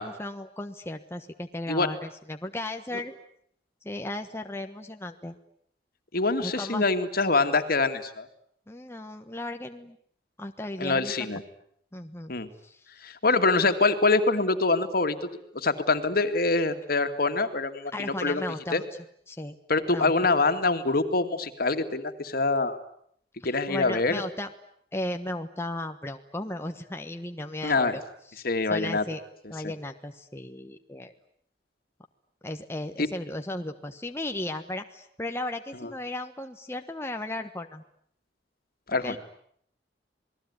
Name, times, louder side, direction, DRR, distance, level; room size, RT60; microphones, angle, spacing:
voice 1, 0.0-3.1 3.8-5.4 6.4-6.8 8.7-10.0 10.4-11.1 11.9-12.3 12.6-12.9 17.9-18.8 19.3-19.5 19.9-20.1 23.4-24.5 24.9-28.0 28.3-28.4 28.7-29.2 29.5-31.1 32.4-37.8 39.0-39.2, left 1 dB, 15° left, 5 dB, 1.3 m, -35 dB
voice 2, 6.1-8.3 10.8-11.4 12.3-12.5 13.0-15.3 15.5-18.4 18.7-18.8 19.7-22.8 23.4-24.2 27.6-28.0 28.4-29.0 33.0-33.1 35.8-35.9 38.9-39.2, left 3 dB, 60° left, 8 dB, 2.4 m, -25 dB
28.0 x 20.5 x 9.8 m, 0.68 s
head